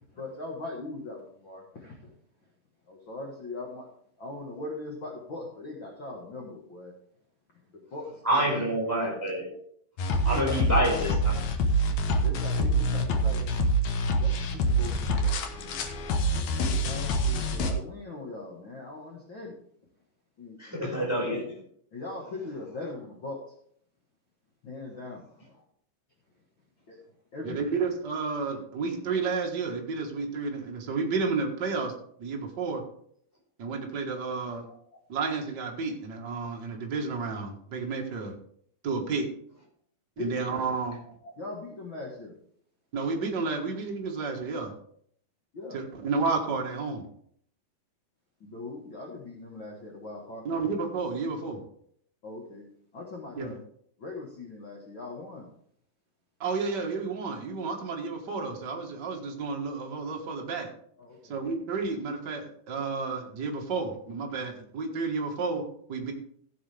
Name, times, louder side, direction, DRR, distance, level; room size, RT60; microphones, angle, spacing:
voice 1, 0.1-2.1 2.9-3.9 4.2-6.9 7.9-8.6 10.2-10.8 12.2-13.4 14.2-15.9 16.6-19.5 20.4-20.9 21.9-23.4 24.6-25.6 26.9-27.0 27.3-27.6 34.9-35.0 40.2-40.4 41.3-42.3 45.5-45.8 48.4-50.6 52.2-52.6 52.9-53.6 54.0-55.5 61.0-61.4, left 2 dB, 50° left, -2 dB, 1.6 m, -40 dB
voice 2, 8.2-9.5 10.2-11.4 20.6-21.4, equal, 5° right, -4 dB, 4.2 m, -27 dB
sound 1, 10.0-17.7, right 1 dB, 65° left, 2.1 m, -26 dB
voice 3, 27.4-31.9 32.2-32.8 33.6-34.6 35.1-38.3 38.8-39.3 40.2-41.0 42.9-44.7 45.7-47.0 50.4-51.6 53.4-53.5 56.4-60.7 61.3-65.6 65.9-66.1, right 4 dB, 50° right, 1 dB, 1.3 m, -31 dB
16.0 x 7.2 x 3.4 m, 0.66 s
omnidirectional pair, 4.2 m